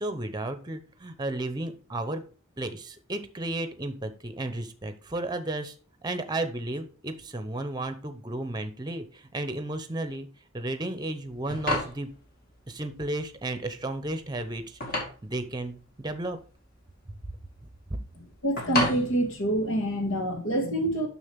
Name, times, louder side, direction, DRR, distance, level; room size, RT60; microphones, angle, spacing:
voice 1, 0.0-2.2 2.6-5.7 6.0-10.3 10.5-12.1 12.7-15.0 15.2-16.4, right 2 dB, 20° right, 0.8 m, -33 dB
sound 1, 11.2-20.2, left 1 dB, 45° left, 2.1 m, -34 dB
voice 2, 18.4-21.1, right 1 dB, 75° left, 2.0 m, -26 dB
7.0 x 6.3 x 3.5 m
head